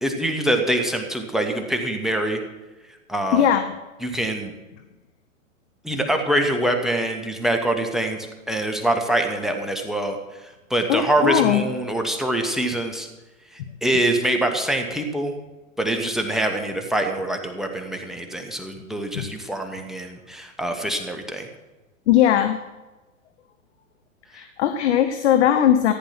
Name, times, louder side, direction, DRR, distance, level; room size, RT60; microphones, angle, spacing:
voice 1, 0.0-2.4 3.1-3.4 4.0-4.5 5.8-8.2 8.5-10.2 10.7-13.1 13.8-15.4 15.8-21.5, right 1 dB, ahead, 5 dB, 1.6 m, -24 dB
voice 2, 3.3-3.7 10.9-11.6 19.1-19.3 20.7-20.8 22.1-22.6 24.3-25.9, left 10 dB, 55° left, 8 dB, 1.1 m, -19 dB
14.5 x 10.5 x 6.0 m, 1.1 s
figure-of-eight pair, 105°, 41 cm